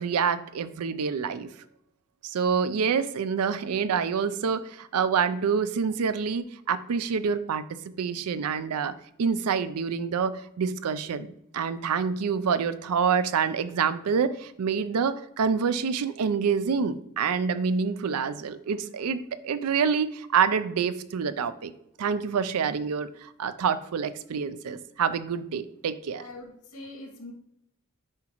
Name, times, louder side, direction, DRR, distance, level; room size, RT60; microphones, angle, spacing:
voice 1, 0.0-1.5 2.2-21.7 22.0-26.2, right 6 dB, 80° right, 14 dB, 0.4 m, -27 dB
voice 2, 26.2-27.3, left 2 dB, 85° left, 0 dB, 2.2 m, -43 dB
7.8 x 4.7 x 3.0 m, 0.78 s
head